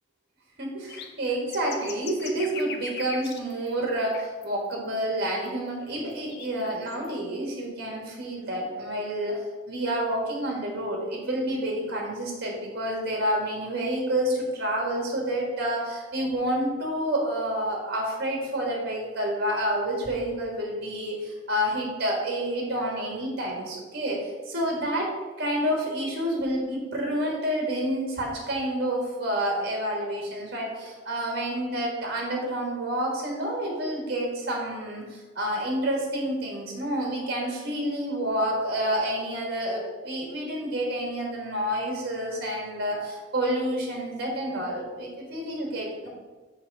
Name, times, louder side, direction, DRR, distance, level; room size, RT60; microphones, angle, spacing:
voice 1, 0.6-9.4 9.7-25.1 25.4-46.1, right 1 dB, 55° right, -1 dB, 1.6 m, -29 dB
sound 1, 0.9-3.7 4.1-4.5 4.7-4.8 5.5-5.6 6.0-7.1, left 5 dB, 55° left, 0.6 m, -40 dB
6.0 x 3.7 x 5.4 m, 1.3 s
head